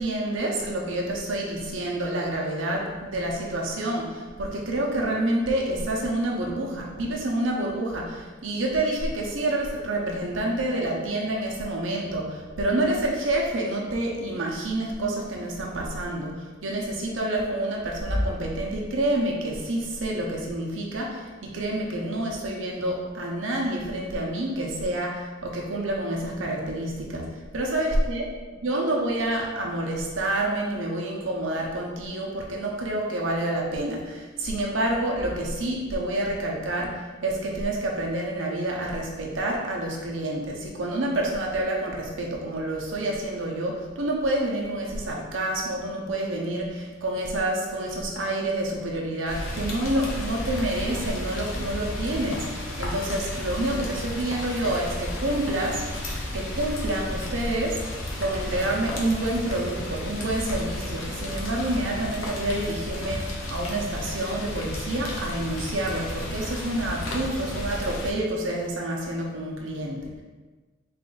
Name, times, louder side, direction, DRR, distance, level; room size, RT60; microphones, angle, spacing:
voice 1, 0.0-27.3 27.5-28.2 28.5-55.8 56.3-57.8 58.2-70.1, right 1 dB, 75° right, -1 dB, 0.8 m, -28 dB
Rain, 49.3-68.1, left 1 dB, 85° left, 0.8 m, -33 dB
4.2 x 2.5 x 3.8 m, 1.3 s
head